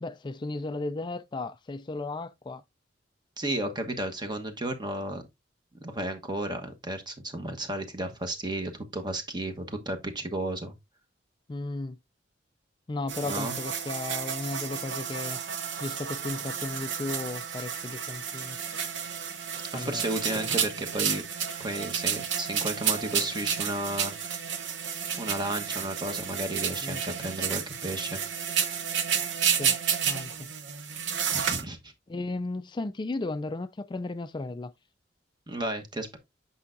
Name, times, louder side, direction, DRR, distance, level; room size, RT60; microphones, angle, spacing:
voice 1, 0.0-2.6 11.5-12.0 12.9-15.4 15.8-18.6 19.7-20.0 20.3-20.6 26.8-27.0 29.6-29.8 30.0-30.5 32.1-34.7, left 2 dB, 25° left, 0.4 m, -35 dB
voice 2, 3.4-5.2 5.8-10.7 13.2-13.5 19.7-21.2 21.6-24.1 25.1-28.2 31.3-31.9 35.5-36.2, right 1 dB, 25° right, 1.2 m, -33 dB
sound 1, 13.1-31.6, right 7 dB, 85° right, 0.8 m, -31 dB
8.4 x 5.5 x 2.6 m
head